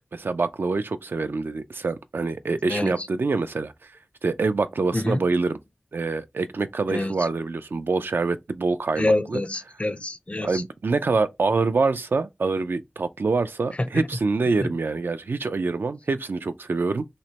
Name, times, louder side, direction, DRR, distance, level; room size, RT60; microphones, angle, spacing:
voice 1, 0.2-3.7 4.2-5.6 5.9-9.4 10.4-17.1, right 3 dB, 85° right, 0.4 m, -25 dB
voice 2, 2.7-3.1 4.9-5.2 6.9-7.3 9.0-10.6 13.8-14.1 14.6-14.8, left 1 dB, 35° left, 0.5 m, -26 dB
3.1 x 2.9 x 2.8 m
wide cardioid pair, 45°, 4 cm